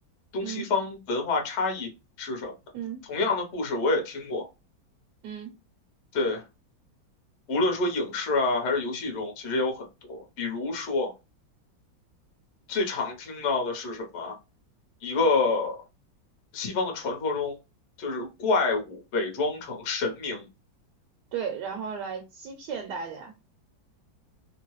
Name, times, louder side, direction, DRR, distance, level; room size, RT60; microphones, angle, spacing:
voice 1, 0.3-1.9 2.2-2.5 3.1-4.4 6.1-6.4 7.5-11.1 12.7-14.4 15.0-15.8 16.5-17.6 18.0-20.5, left 3 dB, 50° left, 0.9 m, -28 dB
voice 2, 21.3-23.3, right 7 dB, 70° right, 1.1 m, -35 dB
3.1 x 2.2 x 3.0 m
omnidirectional pair, 2.1 m